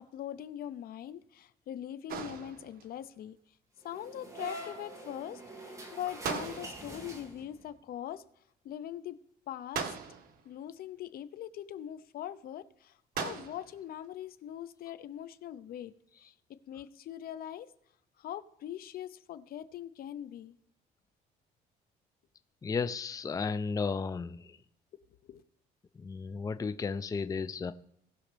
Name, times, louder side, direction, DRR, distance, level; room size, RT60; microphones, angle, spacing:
voice 1, 0.0-3.4 3.8-8.2 8.6-9.2 9.5-9.9 10.4-15.9 16.2-17.7 18.2-20.5 25.2-25.4, left 11 dB, 60° left, 14 dB, 0.8 m, -42 dB
sound 1, 2.1-3.0 6.2-7.1 9.7-10.5 13.2-13.8, right 6 dB, 60° right, 1.5 m, -38 dB
sound 2, 3.8-7.7, right 1 dB, 20° right, 2.4 m, -45 dB
voice 2, 22.6-24.5 26.0-27.7, left 5 dB, 20° left, 12 dB, 0.5 m, -34 dB
19.0 x 6.4 x 3.4 m, 0.73 s
cardioid pair, 110°, 17 cm